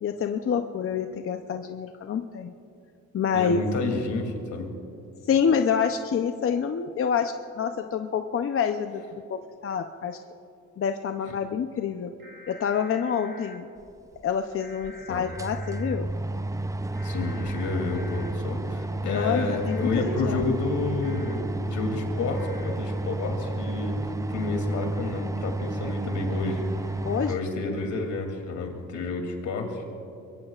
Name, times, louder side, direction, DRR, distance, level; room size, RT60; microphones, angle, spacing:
voice 1, 0.0-2.5 3.1-3.6 5.2-10.2 10.8-12.1 12.5-13.7 14.2-16.1 19.0-20.4 27.0-27.4, left 7 dB, 45° left, 6 dB, 0.7 m, -27 dB
voice 2, 3.3-4.7 11.2-11.3 15.1-15.2 17.0-24.0 24.3-27.0 27.3-30.0, left 3 dB, 75° left, 3 dB, 2.9 m, -30 dB
sound 1, 12.2-13.6 14.6-15.9 16.9-18.3 19.7-20.0 21.0-21.4 22.3-22.7, left 1 dB, 40° right, 3.2 m, -47 dB
sound 2, 14.2-14.3 14.8-14.9 15.2-27.4, right 2 dB, 10° right, 0.5 m, -31 dB
24.5 x 22.0 x 2.5 m, 2.6 s
cardioid pair, 90°, 30 cm